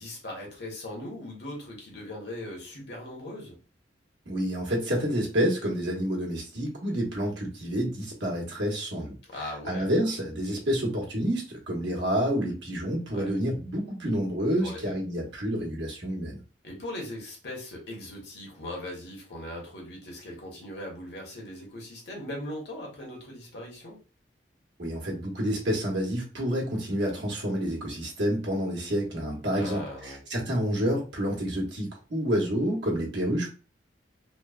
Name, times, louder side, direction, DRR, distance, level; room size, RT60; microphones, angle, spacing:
voice 1, 0.0-3.6 9.3-9.9 13.1-13.3 14.6-14.9 16.6-24.0 29.5-30.2, left 1 dB, 65° left, -1 dB, 1.0 m, -39 dB
voice 2, 4.3-9.2 9.7-16.4 24.8-33.5, equal, 80° right, -2 dB, 1.0 m, -29 dB
3.0 x 2.1 x 2.3 m, 0.34 s
head